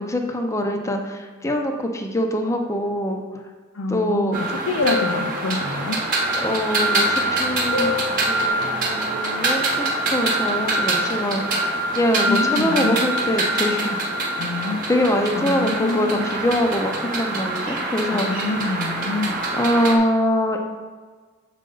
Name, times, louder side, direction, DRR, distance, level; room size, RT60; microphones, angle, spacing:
voice 1, 0.0-3.2 3.9-4.4 6.4-7.9 8.3-11.7 11.9-14.0 14.9-18.5 19.5-20.6, left 1 dB, 15° left, 3 dB, 0.6 m, -23 dB
voice 2, 3.7-6.0 12.3-13.0 14.4-14.8 15.3-16.3 18.1-19.4, left 3 dB, 85° left, 6 dB, 0.6 m, -26 dB
sound 1, 4.3-20.0, right 2 dB, 40° right, 1.0 m, -24 dB
sound 2, 4.8-5.9 7.7-8.5, left 4 dB, 65° left, 1.0 m, -28 dB
6.5 x 5.0 x 3.8 m, 1.4 s
head